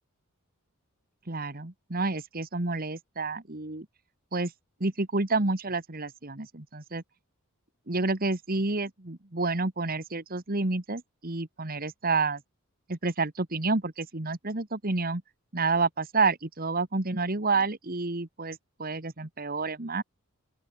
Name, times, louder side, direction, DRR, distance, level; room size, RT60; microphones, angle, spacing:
voice 1, 1.3-3.9 4.3-4.5 4.8-7.0 7.9-12.4 12.9-15.2 15.5-20.0, right 3 dB, 40° right, 1.8 m, -29 dB
open air
head